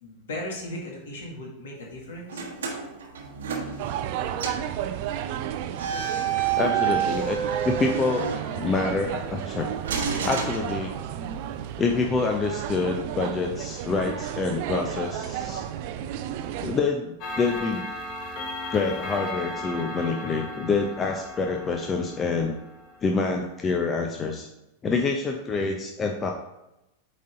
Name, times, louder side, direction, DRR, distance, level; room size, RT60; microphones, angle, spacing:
voice 1, 0.0-2.4 3.8-3.9 8.5-8.7 9.4-9.6, left 1 dB, 60° left, -1 dB, 2.0 m, -37 dB
sound 1, 2.3-4.1 4.4-4.7 5.7-9.0 9.8-11.3, right 7 dB, 60° right, 1.1 m, -29 dB
sound 2, 3.8-16.8, right 10 dB, 45° right, 0.5 m, -33 dB
voice 2, 6.6-7.4 7.6-8.3 8.6-9.7 10.2-10.9 11.8-15.6 16.6-17.8 18.7-22.5 23.0-24.5 24.8-26.3, left 4 dB, 20° left, 2 dB, 0.7 m, -26 dB
Clock, 17.2-23.2, left 2 dB, 40° left, 1.2 m, -36 dB
8.4 x 4.1 x 3.9 m, 0.91 s
figure-of-eight pair, 90°, 0 cm